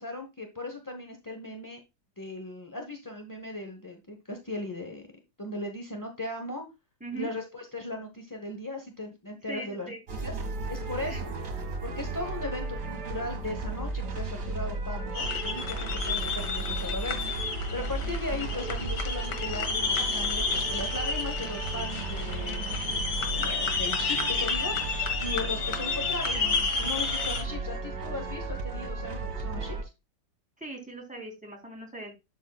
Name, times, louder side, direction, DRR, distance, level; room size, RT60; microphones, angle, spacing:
voice 1, 0.0-1.8 2.2-5.1 5.4-6.7 7.1-10.4 10.7-11.3 11.8-17.2 17.7-22.6 23.3-29.8, left 2 dB, 20° left, 3 dB, 0.6 m, -37 dB
voice 2, 9.5-10.0 11.1-11.2 30.6-32.1, right 3 dB, 5° right, -1 dB, 3.3 m, -39 dB
sound 1, 10.1-29.8, right 3 dB, 55° right, 2.3 m, -34 dB
sound 2, 15.1-27.4, left 5 dB, 80° left, 1.9 m, -31 dB
11.5 x 6.3 x 2.3 m, 0.24 s
omnidirectional pair, 1.9 m